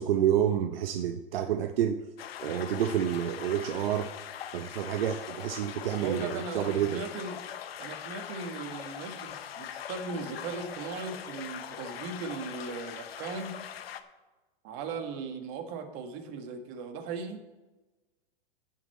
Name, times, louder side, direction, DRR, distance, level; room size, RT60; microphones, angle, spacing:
voice 1, 0.0-2.0 2.4-4.1 4.5-7.0, right 10 dB, 75° right, 7 dB, 0.7 m, -29 dB
sound 1, 2.2-14.0, left 9 dB, 90° left, 0.8 m, -41 dB
voice 2, 6.0-7.4 7.8-13.5 14.6-17.4, right 4 dB, 45° right, 5 dB, 1.6 m, -38 dB
16.0 x 5.7 x 4.3 m, 1.2 s
hypercardioid pair, 120°, 29 cm